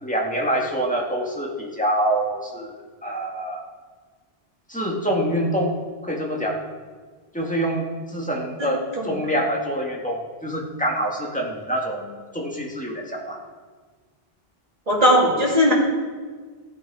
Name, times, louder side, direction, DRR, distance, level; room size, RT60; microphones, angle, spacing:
voice 1, 0.0-3.6 4.7-5.7 6.0-6.6 7.3-13.4, right 1 dB, 5° left, -2 dB, 1.9 m, -26 dB
voice 2, 14.9-15.7, equal, 35° right, -5 dB, 3.0 m, -18 dB
15.5 x 9.0 x 4.9 m, 1.5 s
omnidirectional pair, 1.1 m